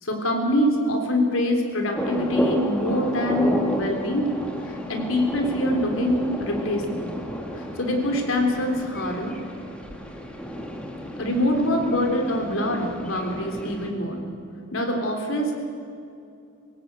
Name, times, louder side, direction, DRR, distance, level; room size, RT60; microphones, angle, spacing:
voice 1, 0.0-4.3 4.6-7.2 7.5-9.4 11.2-14.2 14.7-15.5, left 1 dB, 75° left, 3 dB, 3.8 m, -24 dB
sound 1, 1.9-13.9, equal, 5° left, 2.1 m, -31 dB
24.5 x 16.5 x 8.4 m, 2.6 s
head